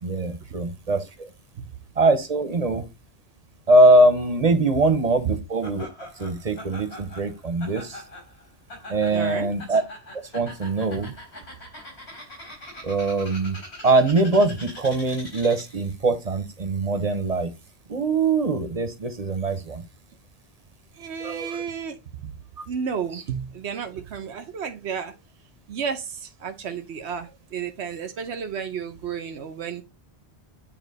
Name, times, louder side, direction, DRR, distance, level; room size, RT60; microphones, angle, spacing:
voice 1, 0.0-1.0 2.0-2.9 3.7-5.9 6.2-8.0 8.9-9.8 10.3-11.1 12.8-13.6 13.8-17.5 17.9-19.8 21.2-21.6 23.1-23.2, right 2 dB, 40° right, 0.9 m, -22 dB
Laughter, 5.6-15.9, left 1 dB, 75° left, 4.0 m, -42 dB
voice 2, 9.1-9.6 11.0-11.1 21.0-22.4 22.7-25.1 25.7-29.8, right 7 dB, 90° right, 1.1 m, -32 dB
8.8 x 3.0 x 4.1 m
omnidirectional pair, 1.1 m